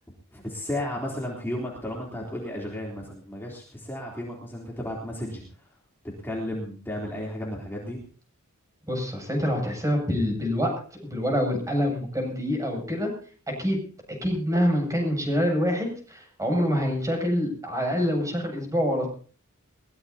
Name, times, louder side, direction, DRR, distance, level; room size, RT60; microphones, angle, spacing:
voice 1, 0.3-5.7 6.2-8.0, left 1 dB, 10° left, -3 dB, 3.4 m, -33 dB
voice 2, 8.9-10.7 11.0-13.1 13.6-13.8 14.2-19.1, equal, 15° right, 1 dB, 7.5 m, -26 dB
22.5 x 20.0 x 2.9 m, 0.42 s
head